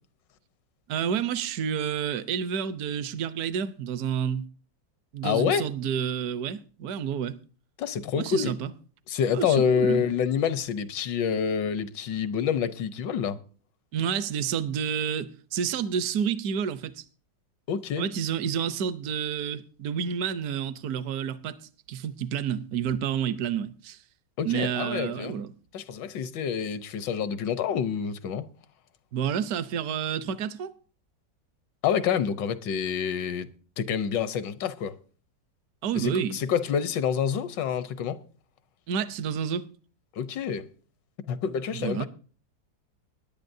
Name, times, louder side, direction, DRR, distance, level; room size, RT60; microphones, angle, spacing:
voice 1, 0.9-4.4 5.1-7.3 8.1-8.7 9.3-10.0 13.9-17.0 18.0-21.5 21.9-24.0 24.4-25.5 29.1-30.7 35.8-36.4 38.9-39.7 41.7-42.1, right 8 dB, 65° right, 1.1 m, -29 dB
voice 2, 5.2-5.7 7.8-8.5 9.1-13.4 17.7-18.1 24.4-25.3 25.7-28.4 31.8-33.5 33.8-35.0 35.9-38.2 40.1-40.7 41.2-42.1, left 7 dB, 80° left, 1.5 m, -27 dB
21.0 x 10.5 x 2.7 m
omnidirectional pair, 1.9 m